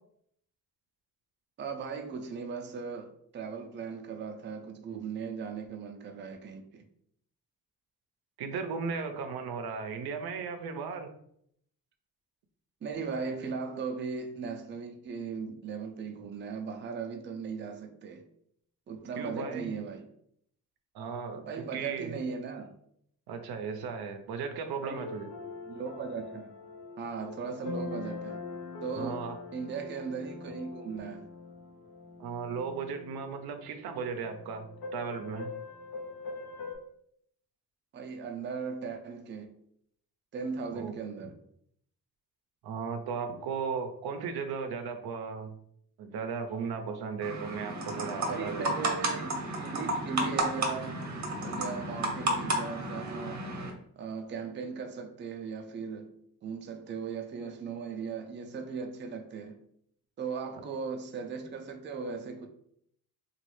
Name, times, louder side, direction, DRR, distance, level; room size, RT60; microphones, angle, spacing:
voice 1, 1.6-6.9 12.8-18.2 18.9-20.1 21.5-22.7 24.8-25.1 25.7-26.5 27.0-28.4 28.8-31.3 37.9-39.5 40.3-41.3 48.3-51.0 51.4-53.4 54.0-56.1 56.4-59.6 60.2-62.5, right 5 dB, 30° right, 0.4 m, -38 dB
voice 2, 8.4-11.1 19.2-19.7 20.9-22.2 23.3-25.3 29.0-29.4 32.2-35.5 40.7-41.3 42.6-45.6 46.0-48.7, right 5 dB, 80° right, 0.5 m, -36 dB
sound 1, 24.5-36.8, left 3 dB, 90° left, 0.7 m, -43 dB
sound 2, 47.2-53.7, right 1 dB, 50° right, 0.8 m, -32 dB
3.0 x 2.3 x 3.0 m
cardioid pair, 105°, 37 cm